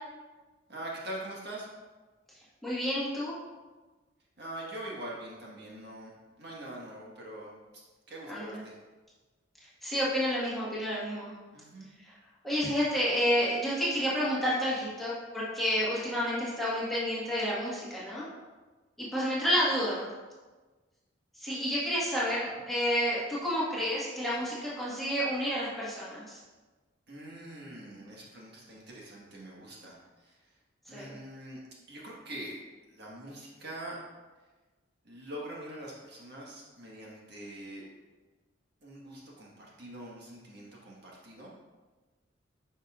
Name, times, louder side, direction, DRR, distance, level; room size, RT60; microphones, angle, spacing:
voice 1, 0.7-1.7 4.4-6.1 6.4-7.8 8.1-8.8 11.5-11.9 22.4-22.6 27.1-30.4 30.9-31.6 31.9-32.5 32.9-34.0 35.0-37.8 38.8-41.5, right 1 dB, 55° right, -4 dB, 1.4 m, -43 dB
voice 2, 2.6-3.3 8.3-8.6 9.8-11.3 12.0-12.1 12.4-18.2 19.0-20.1 21.3-26.4 30.9-31.1, equal, ahead, -9 dB, 1.5 m, -30 dB
9.4 x 5.4 x 2.4 m, 1.3 s
head